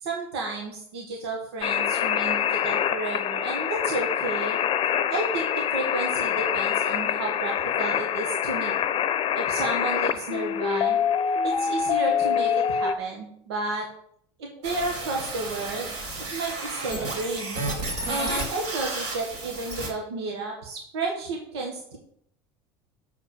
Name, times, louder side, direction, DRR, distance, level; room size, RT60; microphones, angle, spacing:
voice 1, 0.0-4.6 5.1-8.7 9.3-11.0 11.4-13.9 14.4-15.9 16.3-17.6 18.1-22.0, right 3 dB, 90° right, 0 dB, 1.5 m, -32 dB
sound 1, 1.6-12.9, left 8 dB, 40° left, 0.7 m, -25 dB
sound 2, 14.6-19.9, right 2 dB, 65° right, 3.7 m, -32 dB
6.8 x 5.1 x 7.0 m, 0.67 s
supercardioid pair, 95°, 13 cm